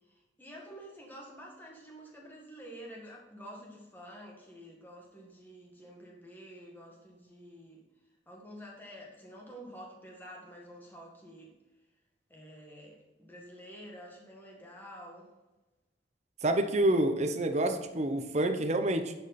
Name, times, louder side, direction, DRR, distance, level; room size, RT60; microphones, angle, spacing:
voice 1, 0.1-7.8 8.3-11.5 12.3-15.3, equal, 10° left, -2 dB, 1.8 m, -49 dB
voice 2, 16.4-19.1, right 1 dB, 40° right, 5 dB, 0.8 m, -28 dB
11.0 x 5.2 x 4.2 m, 1.1 s
head